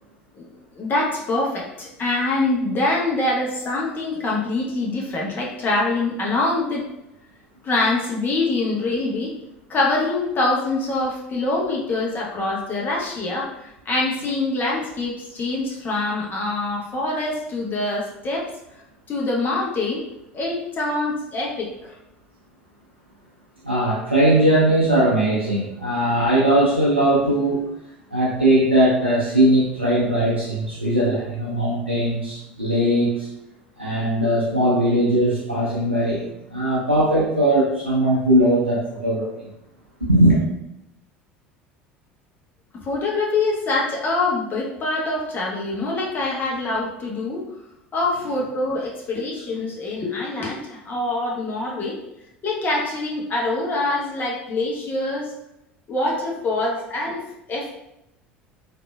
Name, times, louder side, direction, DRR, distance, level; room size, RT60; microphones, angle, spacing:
voice 1, 0.8-6.9 7.6-9.3 9.7-18.5 19.1-20.0 20.3-21.9 42.8-47.4 47.9-52.0 52.4-55.3 55.9-57.2 57.5-57.7, left 2 dB, 35° left, -3 dB, 0.9 m, -24 dB
voice 2, 23.6-27.7 28.1-33.3 33.8-39.3 40.1-40.4, right 1 dB, 90° right, -7 dB, 0.5 m, -19 dB
3.4 x 2.5 x 2.2 m, 0.86 s
figure-of-eight pair, 65°, 6 cm